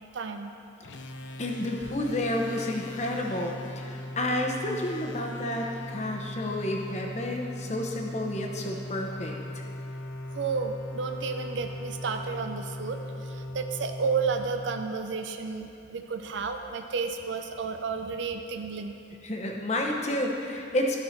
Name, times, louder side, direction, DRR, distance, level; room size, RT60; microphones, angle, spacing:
voice 1, 0.1-0.5 10.3-18.9, right 5 dB, 75° right, 6 dB, 0.5 m, -32 dB
sound 1, 0.8-15.4, left 1 dB, 80° left, 0.6 m, -39 dB
voice 2, 1.4-9.3 19.2-21.0, left 1 dB, 35° left, 1 dB, 0.9 m, -30 dB
13.0 x 4.7 x 5.8 m, 2.7 s
head